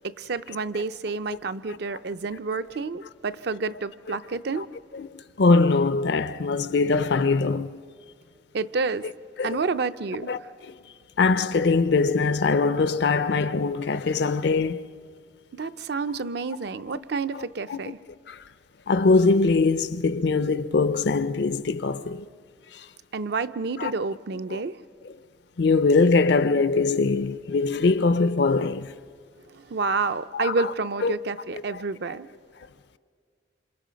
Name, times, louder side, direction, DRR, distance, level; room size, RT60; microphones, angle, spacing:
voice 1, 0.0-4.7 8.5-9.1 9.4-10.3 15.5-18.0 23.1-24.8 29.5-32.3, right 4 dB, 60° right, 0.5 m, -29 dB
voice 2, 4.9-7.7 9.4-9.6 10.3-10.4 10.7-10.8 11.2-14.9 17.7-17.8 18.3-18.4 18.9-22.3 23.8-23.9 24.5-24.6 25.6-28.9 30.3-30.5 31.0-31.1, left 4 dB, 65° left, 0.5 m, -22 dB
27.0 x 27.0 x 5.1 m
head